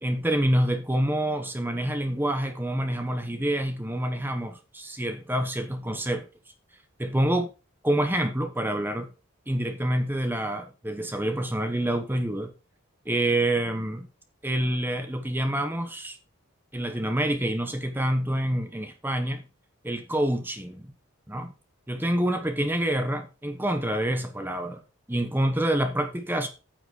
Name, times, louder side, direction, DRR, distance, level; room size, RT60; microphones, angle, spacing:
voice 1, 0.0-6.3 7.0-7.5 7.8-9.1 9.5-12.5 13.0-14.1 14.4-16.2 16.7-19.4 19.8-20.9 21.3-21.5 21.9-24.8 25.1-26.5, right 1 dB, 10° right, 1.0 m, -27 dB
9.4 x 6.0 x 4.9 m
head